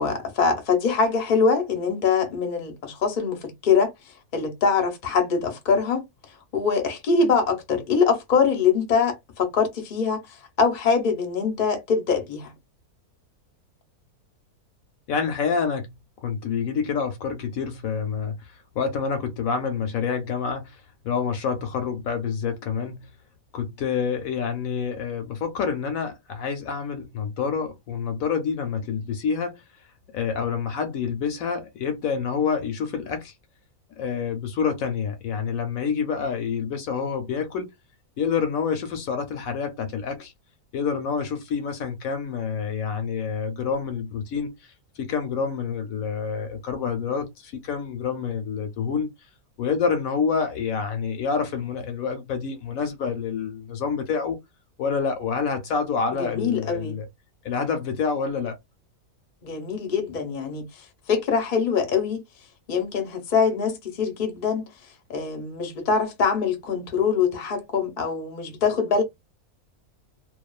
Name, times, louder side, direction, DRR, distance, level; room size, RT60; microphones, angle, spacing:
voice 1, 0.0-3.9 4.3-6.0 6.5-10.2 10.6-12.5 56.1-57.0 59.4-60.7 61.1-62.2 62.7-64.7 65.1-69.0, left 5 dB, 45° left, 0.7 m, -23 dB
voice 2, 15.1-15.9 16.2-18.3 18.8-23.1 23.5-29.6 30.1-33.3 34.0-37.7 38.2-40.3 40.7-44.5 45.0-49.1 49.6-54.4 54.8-57.1 57.4-58.6, left 6 dB, 70° left, 1.0 m, -27 dB
2.6 x 2.3 x 2.2 m
omnidirectional pair, 1.6 m